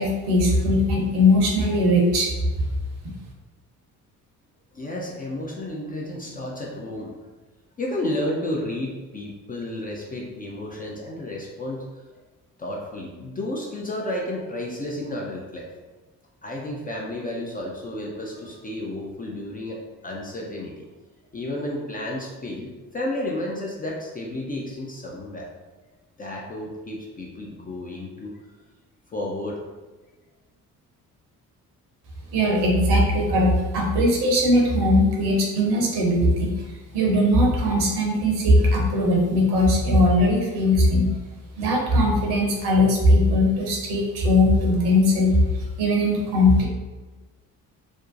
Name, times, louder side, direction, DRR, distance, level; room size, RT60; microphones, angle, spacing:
voice 1, 0.0-2.3 32.3-36.5 36.9-41.1 41.6-46.7, left 1 dB, 60° right, -1 dB, 0.7 m, -19 dB
voice 2, 4.7-7.1 7.8-11.8 12.6-15.7 16.4-20.8 21.3-25.5 26.2-28.4 29.1-29.6, left 1 dB, 20° left, -2 dB, 0.4 m, -32 dB
2.6 x 2.1 x 2.5 m, 1.2 s
figure-of-eight pair, 40°, 45 cm